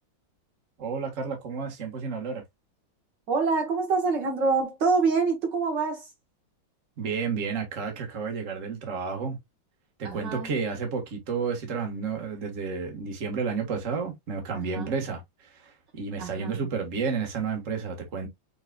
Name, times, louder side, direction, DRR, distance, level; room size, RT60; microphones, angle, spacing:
voice 1, 0.8-2.4 7.0-9.4 10.0-18.3, right 5 dB, 40° right, 1.7 m, -31 dB
voice 2, 3.3-6.1 10.0-10.5 14.5-14.9 16.2-16.6, right 4 dB, 65° right, 1.8 m, -26 dB
5.1 x 4.0 x 2.2 m
omnidirectional pair, 2.2 m